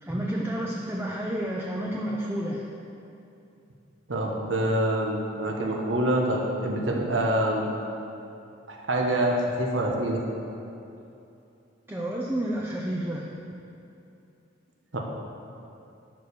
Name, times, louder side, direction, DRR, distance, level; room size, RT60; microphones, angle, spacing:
voice 1, 0.0-2.7 11.9-13.2, right 1 dB, 10° right, -3 dB, 0.7 m, -30 dB
voice 2, 4.1-7.6 8.7-10.2 14.9-15.0, right 1 dB, 80° right, -1 dB, 1.4 m, -26 dB
11.5 x 4.9 x 7.0 m, 2.7 s
head